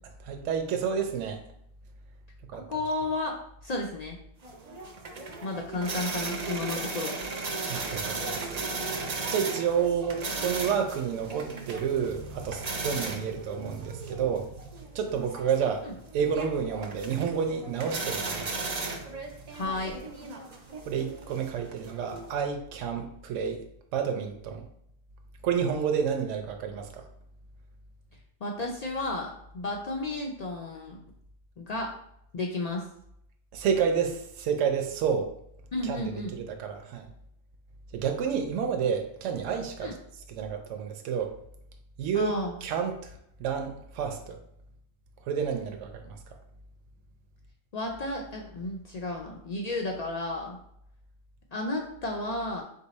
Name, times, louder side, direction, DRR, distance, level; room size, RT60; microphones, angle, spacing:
voice 1, 0.3-1.4 2.5-2.7 7.7-8.6 9.3-14.5 14.9-15.8 16.1-18.5 20.9-23.6 23.9-24.6 25.4-27.0 33.5-35.3 35.8-36.0 36.3-37.1 37.9-40.0 40.3-41.3 42.0-42.3 42.6-43.1 43.4-44.4 45.3-46.2, right 7 dB, 75° right, 4 dB, 0.9 m, -29 dB
voice 2, 2.5-3.4 3.6-4.2 5.4-7.2 19.5-20.0 28.4-31.0 31.6-31.9 32.3-32.8 35.7-36.3 39.8-39.9 42.1-42.6 47.7-50.6 51.5-52.6, left 2 dB, 65° left, 0 dB, 0.4 m, -32 dB
sound 1, 4.4-22.3, right 3 dB, 50° right, 0.5 m, -36 dB
3.9 x 2.7 x 4.0 m, 0.74 s
omnidirectional pair, 1.3 m